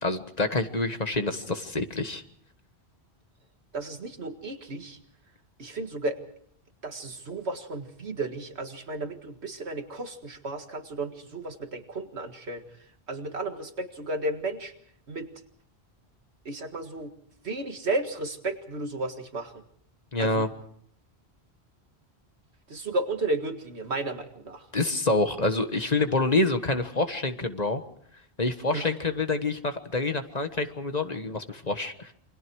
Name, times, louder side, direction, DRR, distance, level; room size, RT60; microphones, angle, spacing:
voice 1, 0.0-2.2 20.1-20.5 24.7-27.8 28.4-32.1, left 2 dB, 40° left, 8 dB, 1.5 m, -27 dB
voice 2, 3.7-5.0 5.6-6.2 6.8-12.6 13.1-14.7 15.1-15.3 16.5-17.1 17.4-19.5 20.2-20.5 22.7-24.6 28.7-28.9, right 2 dB, 80° right, 6 dB, 2.1 m, -33 dB
28.0 x 24.5 x 4.7 m, 0.64 s
omnidirectional pair, 1.1 m